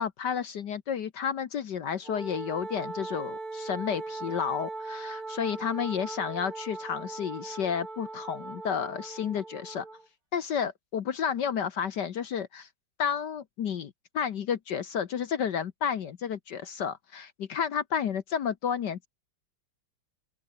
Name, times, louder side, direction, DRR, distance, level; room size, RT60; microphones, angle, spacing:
voice 1, 0.0-9.9 10.3-12.7 13.0-19.1, left 7 dB, 55° left, 1.5 m, -31 dB
Wind instrument woodwind instrument, 2.0-10.1, right 3 dB, 75° right, 7.7 m, -39 dB
open air
omnidirectional pair, 2.4 m